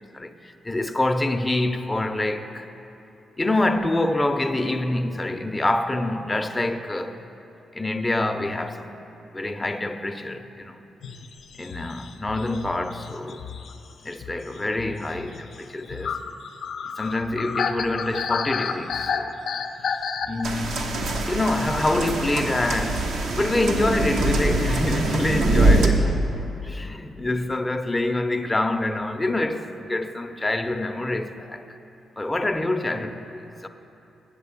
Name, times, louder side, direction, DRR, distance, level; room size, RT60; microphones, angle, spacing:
voice 1, 0.0-2.7 3.4-7.2 7.7-9.0 9.3-10.8 11.6-13.4 14.0-16.3 17.0-19.3 20.3-26.1 26.6-31.6 32.2-33.7, left 2 dB, 20° left, 0.6 m, -26 dB
sound 1, 11.0-21.0, left 6 dB, 70° left, 0.5 m, -32 dB
sound 2, 20.4-25.9, right 2 dB, 80° right, 0.9 m, -23 dB
8.0 x 7.5 x 7.1 m
supercardioid pair, 55°, 0 cm